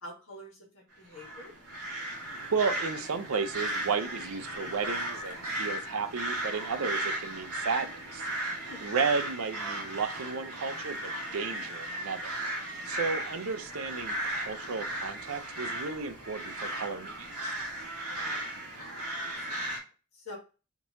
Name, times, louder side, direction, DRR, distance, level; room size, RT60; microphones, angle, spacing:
voice 1, 0.0-1.5 8.6-8.9 11.3-11.7 18.0-18.9 19.2-19.9 20.1-20.4, left 1 dB, 65° left, 1.6 m, -48 dB
sound 1, 1.1-19.8, right 1 dB, 90° right, 1.6 m, -36 dB
voice 2, 2.5-12.2 12.5-17.5, right 5 dB, 65° right, 0.5 m, -33 dB
3.7 x 2.9 x 2.6 m
head